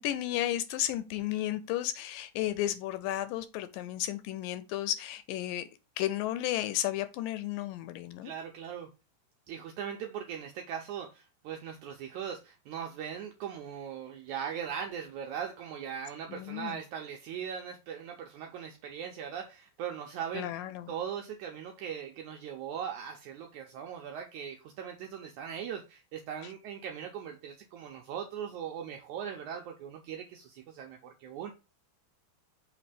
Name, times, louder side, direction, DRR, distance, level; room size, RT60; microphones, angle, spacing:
voice 1, 0.0-5.7 6.0-8.3 16.3-16.8 20.3-20.9, left 13 dB, 80° left, 2.0 m, -33 dB
voice 2, 8.2-8.9 9.5-31.5, right 8 dB, 85° right, 1.7 m, -40 dB
6.0 x 3.2 x 4.9 m
omnidirectional pair, 4.1 m